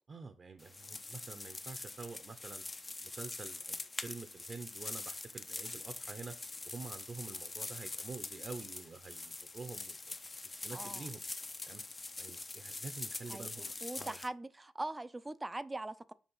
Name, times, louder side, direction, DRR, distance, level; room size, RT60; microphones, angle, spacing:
voice 1, 0.1-2.6 3.0-6.3 6.7-10.1 10.6-11.2 11.7-11.8 12.2-13.7 14.0-14.2, right 4 dB, 50° right, 0.9 m, -47 dB
sound 1, 0.6-14.3, left 3 dB, 30° left, 0.7 m, -44 dB
voice 2, 10.7-11.1 13.3-16.1, right 2 dB, 20° right, 0.6 m, -42 dB
7.2 x 2.9 x 5.7 m
supercardioid pair, 55°, 0 cm